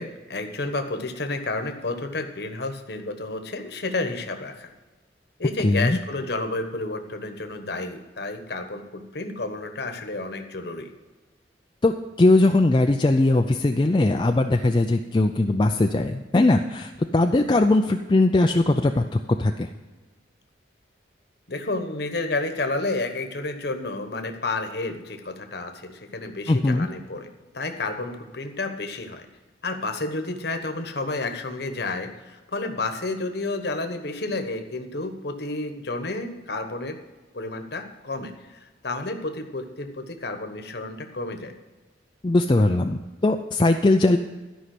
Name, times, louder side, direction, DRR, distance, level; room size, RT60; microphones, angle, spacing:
voice 1, 0.0-4.7 5.4-10.9 21.5-27.3 27.5-29.2 29.6-37.0 37.3-41.5, left 2 dB, 60° left, 6 dB, 1.2 m, -31 dB
voice 2, 5.6-6.0 11.8-19.0 19.4-19.7 26.5-26.9 42.2-44.2, left 2 dB, 25° left, 5 dB, 0.4 m, -20 dB
13.0 x 5.5 x 7.7 m, 1.2 s
head